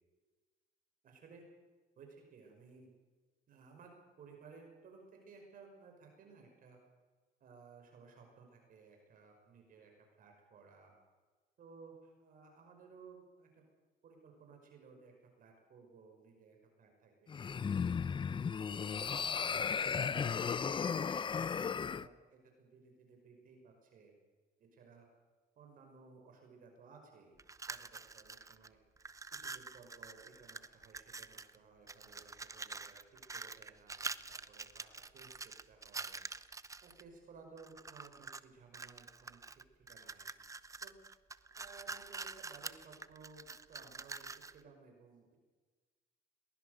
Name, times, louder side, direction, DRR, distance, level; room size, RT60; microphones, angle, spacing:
voice 1, 1.0-1.4 2.0-2.9 3.5-3.9 4.2-6.8 7.4-9.9 10.2-11.0 11.6-13.5 14.0-18.1 18.8-21.0 21.3-24.1 24.6-25.1 25.6-27.4 27.7-28.8 29.3-36.2 36.8-39.6 39.9-40.3 40.8-40.9 41.6-45.4, right 4 dB, 55° right, 2 dB, 5.7 m, -58 dB
sound 1, 17.3-22.1, left 6 dB, 30° left, 0.7 m, -35 dB
sound 2, 27.4-28.7 29.0-31.6 31.9-37.0 37.6-38.4 38.7-44.6, right 4 dB, 20° right, 0.8 m, -46 dB
22.0 x 19.5 x 6.7 m, 1.4 s
cardioid pair, 110°, 17 cm